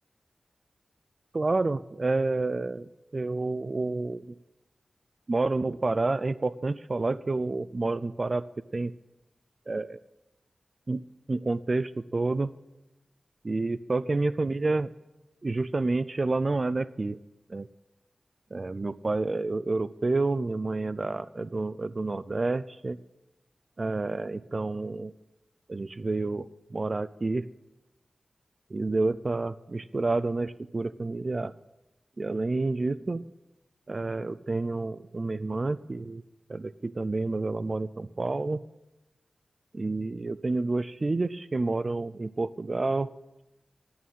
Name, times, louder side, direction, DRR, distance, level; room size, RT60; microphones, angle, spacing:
voice 1, 1.3-4.3 5.3-8.4 8.7-8.9 9.7-10.0 10.9-11.0 11.3-12.5 13.4-14.9 15.4-17.2 17.5-17.7 18.5-23.0 23.8-25.1 25.7-27.4 28.7-31.5 32.2-33.2 33.9-36.2 36.5-38.6 39.7-43.1, right 3 dB, 50° right, 16 dB, 0.4 m, -29 dB
11.0 x 8.6 x 8.9 m, 0.96 s
cardioid pair, 55°, 0 cm